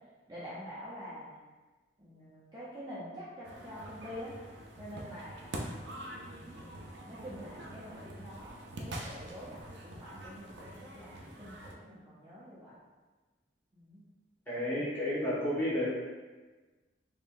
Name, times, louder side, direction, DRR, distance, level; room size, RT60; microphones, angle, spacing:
voice 1, 0.3-1.3 2.0-4.4 4.8-5.6 6.6-6.7 7.0-12.7 13.7-14.0, equal, 25° right, -10 dB, 0.8 m, -46 dB
sound 1, 3.4-11.8, right 1 dB, 75° right, 0.5 m, -45 dB
voice 2, 14.5-15.9, left 1 dB, 10° left, -11 dB, 1.3 m, -31 dB
4.0 x 3.0 x 2.6 m, 1.3 s
head